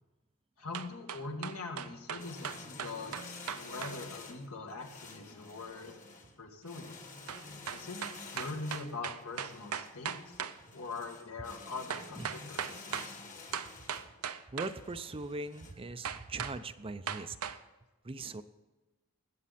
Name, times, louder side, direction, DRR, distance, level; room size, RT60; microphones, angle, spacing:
voice 1, 0.6-6.0 6.4-7.0 7.7-8.0 8.3-10.4 10.7-13.2, left 3 dB, 70° left, 3 dB, 2.0 m, -43 dB
sound 1, 0.7-4.0 7.3-10.6 11.9-13.1 13.5-14.8 16.0-16.6 17.1-17.6, right 8 dB, 75° right, 0.7 m, -38 dB
sound 2, 2.2-15.7, left 3 dB, 35° left, 1.8 m, -50 dB
voice 2, 14.5-17.5 18.0-18.4, right 3 dB, 25° right, 11 dB, 0.6 m, -40 dB
19.5 x 8.4 x 4.2 m, 1.1 s
head